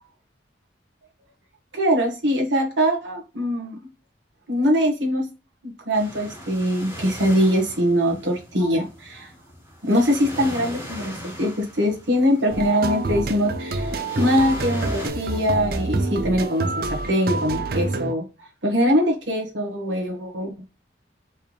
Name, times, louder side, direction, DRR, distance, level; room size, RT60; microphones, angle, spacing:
voice 1, 1.7-3.8 4.5-5.2 5.6-9.3 9.8-20.5, equal, 85° right, 1 dB, 1.5 m, -22 dB
sound 1, 5.9-15.1, equal, 15° right, 1.7 m, -39 dB
sound 2, 12.5-18.1, right 3 dB, 55° right, 0.5 m, -27 dB
4.5 x 3.5 x 3.1 m, 0.32 s
head